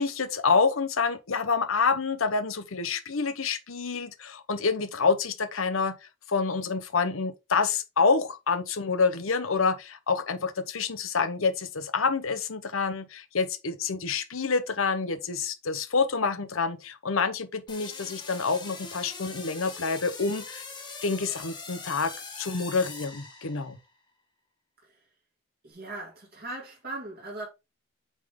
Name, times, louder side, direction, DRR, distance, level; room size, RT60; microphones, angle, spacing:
voice 1, 0.0-5.9 6.3-20.6 21.0-22.1 22.4-23.8, left 4 dB, 85° left, 0.9 m, -27 dB
sound 1, 17.7-23.9, left 4 dB, 20° left, 1.6 m, -42 dB
voice 2, 25.6-27.5, right 2 dB, 45° right, 2.5 m, -39 dB
8.2 x 3.8 x 3.7 m
head